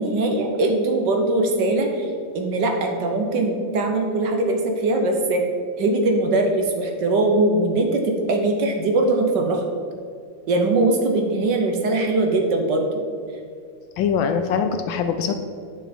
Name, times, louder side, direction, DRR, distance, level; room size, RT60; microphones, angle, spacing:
voice 1, 0.0-5.4 5.8-9.6 10.5-13.0, right 2 dB, 65° right, 3 dB, 1.3 m, -21 dB
voice 2, 14.0-15.4, left 6 dB, 75° left, 7 dB, 1.2 m, -22 dB
9.6 x 5.7 x 4.3 m, 2.3 s
omnidirectional pair, 2.3 m